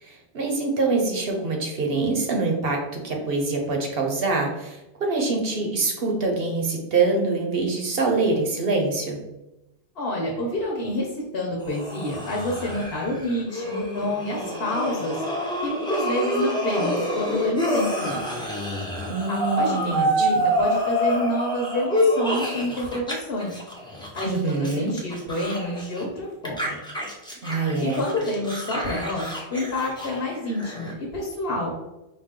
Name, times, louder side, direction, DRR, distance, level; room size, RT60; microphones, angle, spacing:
voice 1, 0.0-9.2 19.1-20.5 24.3-24.9 27.4-28.1, right 3 dB, 65° right, 1 dB, 0.9 m, -25 dB
voice 2, 9.9-15.2 15.6-18.3 19.3-23.6 24.1-26.8 27.8-31.7, left 1 dB, 70° left, -2 dB, 1.1 m, -28 dB
sound 1, 11.6-23.1 23.4-26.0 26.4-30.9, equal, 5° left, 0.6 m, -27 dB
4.8 x 2.5 x 3.6 m, 0.95 s
omnidirectional pair, 1.1 m